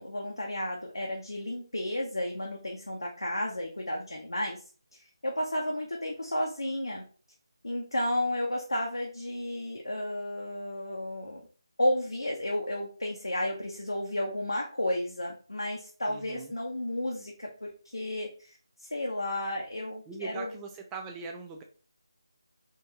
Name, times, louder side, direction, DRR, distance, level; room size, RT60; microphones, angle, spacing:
voice 1, 0.0-4.6 4.9-7.0 7.6-11.4 11.8-20.5, left 1 dB, 85° left, -1 dB, 0.7 m, -32 dB
voice 2, 16.1-16.5 20.1-21.6, right 5 dB, 10° right, 3 dB, 0.3 m, -41 dB
3.6 x 2.6 x 2.9 m, 0.40 s
figure-of-eight pair, 160°, 3 cm